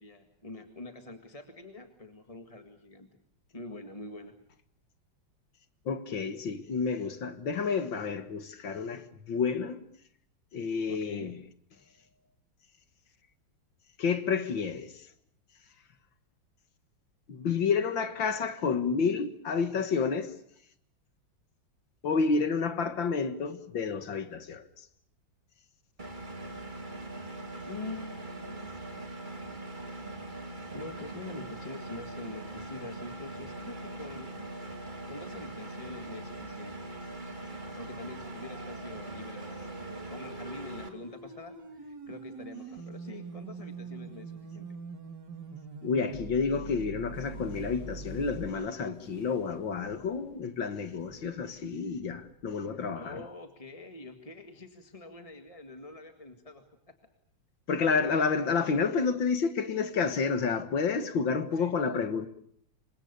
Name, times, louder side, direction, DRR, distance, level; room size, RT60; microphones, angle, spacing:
voice 1, 0.0-3.1 3.5-4.4 10.9-11.4 27.6-28.9 30.7-34.3 35.1-36.9 37.7-39.8 40.1-44.8 52.7-56.9 61.5-61.8, left 2 dB, 20° left, 1.8 m, -45 dB
voice 2, 5.9-9.8 10.5-11.4 14.0-14.9 17.3-20.3 22.0-24.7 45.8-53.3 57.7-62.3, left 5 dB, 70° left, 2.3 m, -30 dB
Engine, 26.0-40.9, right 2 dB, 25° right, 2.7 m, -41 dB
sound 1, 37.1-48.5, right 4 dB, 55° right, 2.8 m, -44 dB
sound 2, 47.1-52.8, left 1 dB, 55° left, 7.4 m, -53 dB
27.5 x 25.0 x 6.8 m
omnidirectional pair, 2.1 m